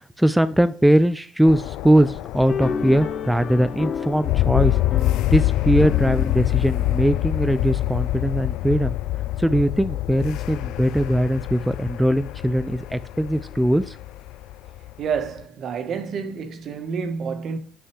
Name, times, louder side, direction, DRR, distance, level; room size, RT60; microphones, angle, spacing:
voice 1, 0.2-4.8 5.3-8.9 9.4-14.0, right 1 dB, 5° right, 0.5 m, -20 dB
sound 1, 1.4-15.4, left 15 dB, 80° left, 0.4 m, -26 dB
sound 2, 2.5-8.0, left 6 dB, 50° left, 1.0 m, -33 dB
voice 2, 15.0-17.6, right 6 dB, 60° right, 1.5 m, -28 dB
8.0 x 6.2 x 4.7 m
supercardioid pair, 85°, 0 cm